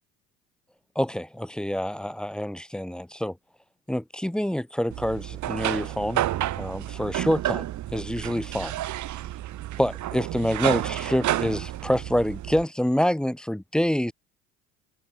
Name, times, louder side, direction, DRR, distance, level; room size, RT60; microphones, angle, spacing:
voice 1, 1.0-3.3 3.9-6.2 6.6-8.7 9.8-14.1, equal, ahead, 0.8 m, -27 dB
sound 1, 4.9-12.6, right 14 dB, 45° right, 1.6 m, -30 dB
hypercardioid pair, 65°, 39 cm